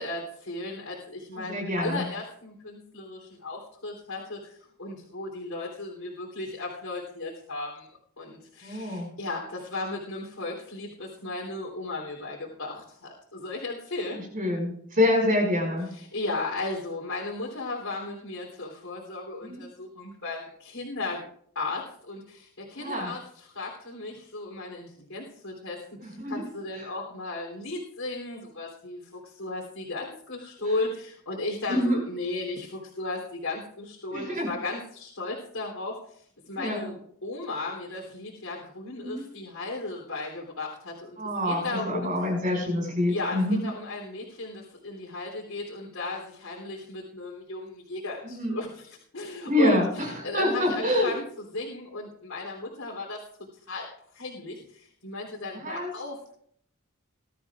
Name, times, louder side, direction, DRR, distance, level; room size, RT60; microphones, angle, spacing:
voice 1, 0.0-7.9 8.2-14.2 15.9-21.2 21.5-41.2 41.4-42.1 43.1-53.2 53.7-53.9 54.1-56.2, left 2 dB, 80° left, -4 dB, 3.3 m, -35 dB
voice 2, 1.3-2.0 8.6-9.1 14.1-15.9 19.4-19.6 22.8-23.1 26.0-26.4 26.7-26.9 30.6-30.7 31.7-32.0 34.1-34.5 36.5-36.9 39.0-39.3 41.2-43.6 48.2-48.6 49.5-51.1 55.5-55.9, left 1 dB, 40° right, 0 dB, 5.7 m, -27 dB
21.5 x 12.5 x 2.5 m, 0.64 s
head